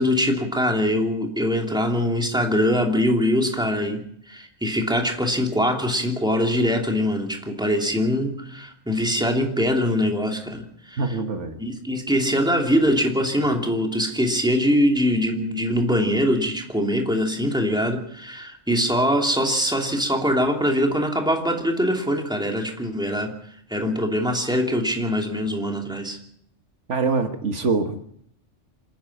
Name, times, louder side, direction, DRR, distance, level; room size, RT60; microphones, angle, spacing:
voice 1, 0.0-11.0 11.6-23.3 23.7-26.2, equal, 5° right, 2 dB, 2.9 m, -23 dB
voice 2, 11.0-11.6 26.9-28.0, right 4 dB, 75° right, 7 dB, 1.7 m, -24 dB
26.5 x 10.0 x 9.9 m, 0.70 s
omnidirectional pair, 1.2 m